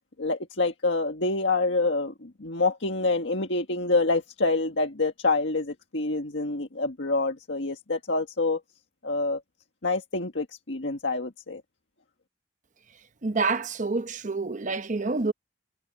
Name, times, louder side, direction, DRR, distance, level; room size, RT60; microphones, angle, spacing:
voice 1, 0.2-8.6 9.0-9.4 9.8-11.6, left 3 dB, 85° left, 1.7 m, -27 dB
voice 2, 13.2-15.3, right 3 dB, 45° right, 0.9 m, -27 dB
head